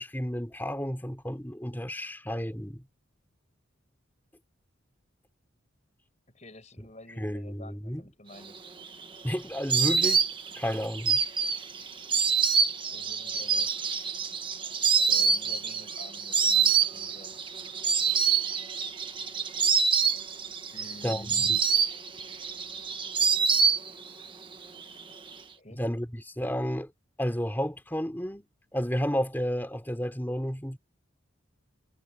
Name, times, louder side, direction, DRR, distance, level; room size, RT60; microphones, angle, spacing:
voice 1, 0.0-2.8 7.2-8.1 9.2-10.2 10.6-11.2 21.0-21.6 25.7-26.9 27.2-28.5 28.7-30.8, equal, 10° left, 3.2 m, -31 dB
voice 2, 6.3-8.6 12.9-13.7 15.1-17.4 20.7-21.6 25.6-25.8, left 1 dB, 35° left, 5.7 m, -49 dB
Insect, 8.5-24.3 24.5-25.3, right 6 dB, 25° right, 1.5 m, -26 dB
head